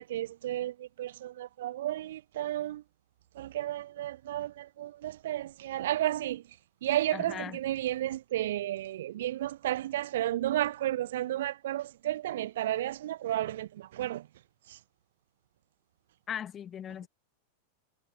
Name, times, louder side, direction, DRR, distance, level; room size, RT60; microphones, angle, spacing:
voice 1, 0.0-2.8 3.3-14.3 14.7-14.8, right 13 dB, 60° right, 1.1 m, -33 dB
voice 2, 7.1-7.6 16.3-17.1, left 9 dB, 25° left, 3.3 m, -38 dB
figure-of-eight pair, 90°, 0 cm